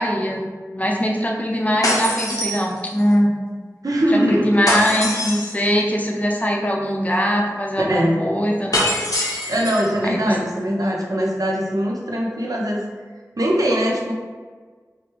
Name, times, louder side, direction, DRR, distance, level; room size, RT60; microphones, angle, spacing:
voice 1, 0.0-3.3 4.1-8.9 10.0-10.3, equal, 25° left, -1 dB, 0.6 m, -21 dB
sound 1, 1.8-3.1 4.7-5.7 8.7-9.9, left 1 dB, 70° left, 0.9 m, -23 dB
voice 2, 3.8-4.5 7.8-8.2 9.5-12.8 13.4-14.1, equal, 70° right, -2 dB, 0.7 m, -21 dB
4.9 x 2.1 x 3.0 m, 1.5 s
wide cardioid pair, 40°, 6 cm